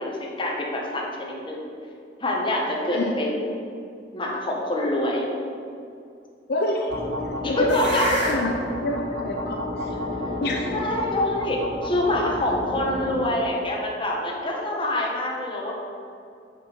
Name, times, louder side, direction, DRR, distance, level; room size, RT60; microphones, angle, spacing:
voice 1, 0.0-1.6 2.2-3.4 4.1-5.3 7.4-8.1 10.7-15.7, left 1 dB, 30° left, -2 dB, 1.2 m, -26 dB
voice 2, 6.5-7.0 7.5-8.0 8.3-9.9 10.4-10.7, left 1 dB, 60° left, 1 dB, 0.6 m, -27 dB
sound 1, 6.9-13.5, left 1 dB, 75° right, 1.6 m, -30 dB
5.7 x 5.7 x 5.5 m, 2.4 s
head